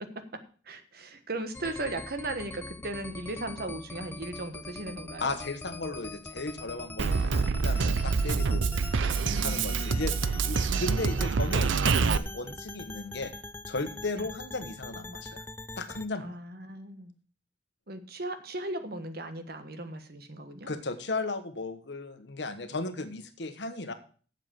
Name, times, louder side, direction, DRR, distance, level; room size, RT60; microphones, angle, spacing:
voice 1, 0.6-5.3 9.3-10.0 14.2-14.3 16.2-17.1 17.9-20.7, right 2 dB, 55° right, 9 dB, 1.4 m, -37 dB
sound 1, 1.5-16.1, left 2 dB, 10° left, 0.4 m, -43 dB
voice 2, 5.2-8.8 9.4-10.2 10.4-13.3 13.7-15.4 15.8-16.3 20.7-23.9, left 3 dB, 65° left, 9 dB, 1.3 m, -35 dB
Drum kit, 7.0-12.2, right 5 dB, 90° right, 0.6 m, -26 dB
7.8 x 7.4 x 7.3 m, 0.41 s
head